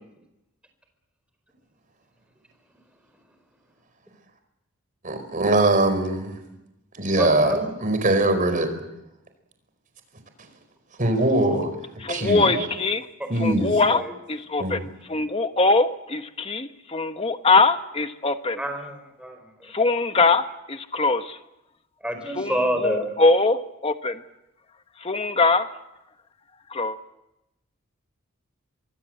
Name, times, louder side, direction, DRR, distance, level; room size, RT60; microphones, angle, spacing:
voice 1, 5.0-6.4 7.0-8.8 11.0-11.7 12.1-12.7 13.3-13.8 14.6-14.9, right 2 dB, 35° right, 8 dB, 4.6 m, -22 dB
voice 2, 7.2-7.7 13.2-13.3 13.9-14.1 18.6-19.4 22.0-23.2, right 1 dB, 5° right, 5 dB, 4.5 m, -28 dB
voice 3, 12.1-13.0 13.4-14.0 14.3-14.8 15.1-18.6 19.7-20.4 20.9-21.2 22.4-22.5 22.8-24.1 25.0-25.7 26.8-26.9, left 3 dB, 25° left, 8 dB, 1.2 m, -21 dB
25.0 x 23.0 x 7.9 m, 0.90 s
head